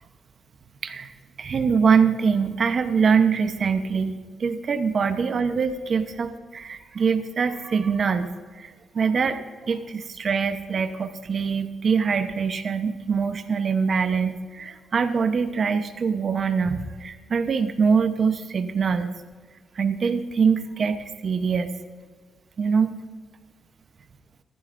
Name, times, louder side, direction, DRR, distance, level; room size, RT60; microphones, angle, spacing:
voice 1, 1.4-8.3 8.6-19.1 19.8-21.7 22.6-22.9, right 5 dB, 45° right, 9 dB, 0.8 m, -23 dB
15.5 x 14.0 x 2.6 m, 1.5 s
cardioid pair, 100°, 0 cm